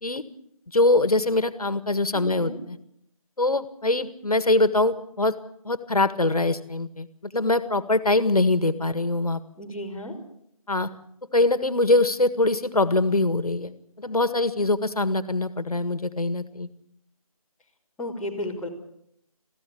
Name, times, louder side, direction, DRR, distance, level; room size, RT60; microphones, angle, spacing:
voice 1, 0.7-2.5 3.4-5.3 5.6-7.1 7.3-9.4 10.7-10.9 11.3-16.7, left 2 dB, 80° left, 12 dB, 1.8 m, -23 dB
voice 2, 2.1-2.6 9.5-10.2 18.0-18.7, left 1 dB, 5° left, -8 dB, 3.4 m, -33 dB
21.5 x 15.5 x 8.7 m, 0.73 s
figure-of-eight pair, 160°, 19 cm